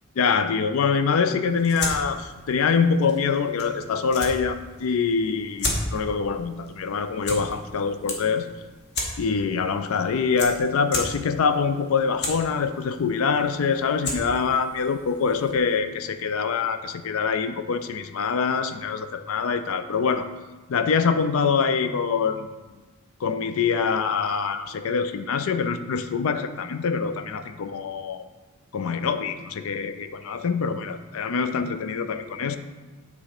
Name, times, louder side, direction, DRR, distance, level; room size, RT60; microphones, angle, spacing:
voice 1, 0.2-8.5 9.2-20.3 20.7-22.5 23.2-28.3 28.7-32.6, left 5 dB, 70° left, 10 dB, 0.4 m, -24 dB
sound 1, 1.4-15.8, left 2 dB, 50° left, 1.1 m, -35 dB
8.4 x 3.3 x 4.9 m, 1.2 s
head